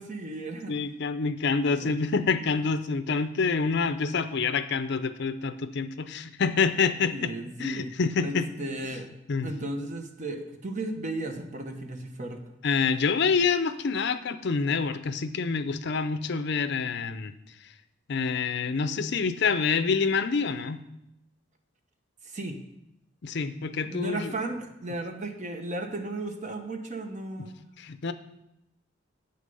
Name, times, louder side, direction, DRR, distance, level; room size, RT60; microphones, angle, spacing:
voice 1, 0.0-0.8 1.6-1.9 7.1-7.9 8.2-9.1 9.4-12.4 22.2-22.6 23.8-27.6, right 2 dB, 40° right, 5 dB, 1.0 m, -35 dB
voice 2, 0.7-7.3 7.6-8.5 9.3-9.5 12.6-17.3 18.1-20.8 23.2-24.3 27.8-28.1, left 5 dB, 60° left, 11 dB, 0.5 m, -27 dB
8.4 x 6.6 x 5.4 m, 0.84 s
head